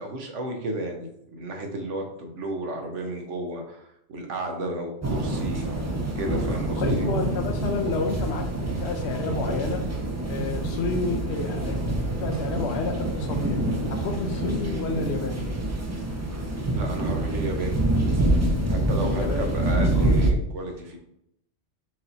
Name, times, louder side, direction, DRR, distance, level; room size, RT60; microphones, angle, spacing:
voice 1, 0.0-5.7 6.2-7.1 16.7-17.8 18.7-21.0, right 1 dB, 80° right, 3 dB, 1.2 m, -32 dB
sound 1, 5.0-20.3, right 1 dB, 20° right, 0.4 m, -26 dB
voice 2, 6.8-9.9 10.2-15.5 19.0-19.6 19.9-20.2, left 4 dB, 65° left, 4 dB, 0.9 m, -30 dB
4.6 x 2.7 x 4.3 m, 0.79 s
omnidirectional pair, 1.2 m